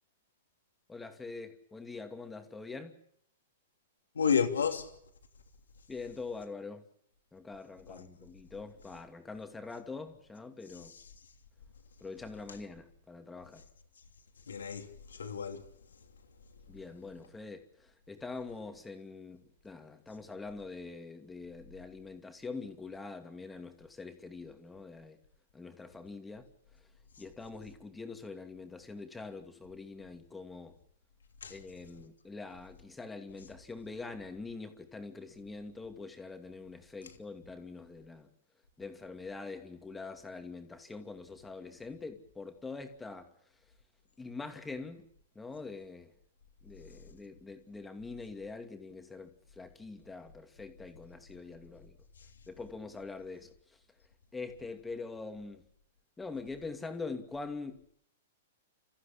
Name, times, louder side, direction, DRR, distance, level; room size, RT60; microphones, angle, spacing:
voice 1, 0.9-2.9 5.9-6.8 7.3-10.9 12.0-13.6 16.7-25.2 25.5-26.5 27.2-30.7 31.5-38.3 38.8-43.3 44.2-45.0 45.3-46.1 46.6-51.9 52.5-53.5 54.3-55.6 56.2-57.9, left 3 dB, 10° left, 2.6 m, -44 dB
voice 2, 4.1-4.9 7.9-8.0 10.7-11.1 12.5-12.6 14.5-15.7 31.4-31.6 52.2-52.3, left 7 dB, 85° left, 3.0 m, -32 dB
29.5 x 14.5 x 8.7 m
hypercardioid pair, 120°, 0 cm